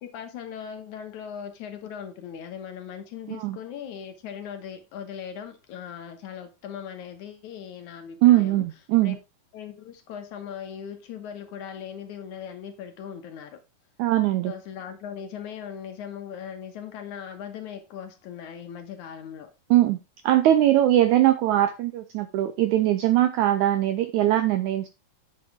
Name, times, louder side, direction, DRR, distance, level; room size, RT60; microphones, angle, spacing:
voice 1, 0.0-8.6 9.0-9.1 9.5-13.6 14.5-19.5, left 8 dB, 65° left, 2.3 m, -39 dB
voice 2, 8.2-9.2 14.0-14.5 19.7-20.0 20.2-24.9, right 13 dB, 80° right, 1.7 m, -21 dB
9.3 x 6.2 x 3.6 m
omnidirectional pair, 4.0 m